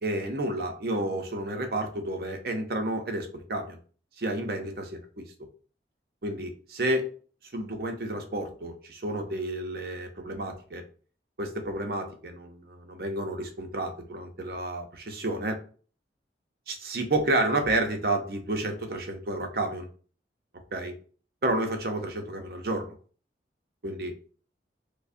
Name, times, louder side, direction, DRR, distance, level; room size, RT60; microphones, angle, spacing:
voice 1, 0.0-3.8 4.2-5.2 6.2-7.1 7.5-10.8 11.4-15.6 16.7-19.9 20.7-20.9 21.4-22.9 23.8-24.1, right 1 dB, 55° right, 5 dB, 0.6 m, -30 dB
5.0 x 2.1 x 2.5 m, 0.40 s
head